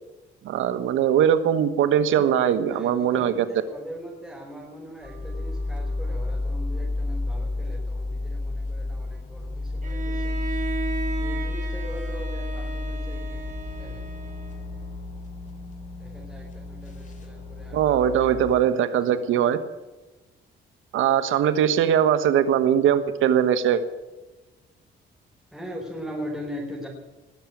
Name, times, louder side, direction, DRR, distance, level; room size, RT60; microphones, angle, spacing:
voice 1, 0.4-3.4 17.7-19.6 20.9-23.8, right 9 dB, 85° right, 11 dB, 1.4 m, -21 dB
voice 2, 2.0-10.4 11.2-13.5 13.8-14.1 16.0-17.8 18.3-18.9 25.5-26.9, equal, ahead, -3 dB, 4.6 m, -40 dB
sound 1, 5.0-18.5, left 2 dB, 40° left, 3.3 m, -31 dB
Bowed string instrument, 9.8-14.8, right 4 dB, 40° right, 3.5 m, -35 dB
20.0 x 7.3 x 9.3 m, 1.1 s
cardioid pair, 90°, 20 cm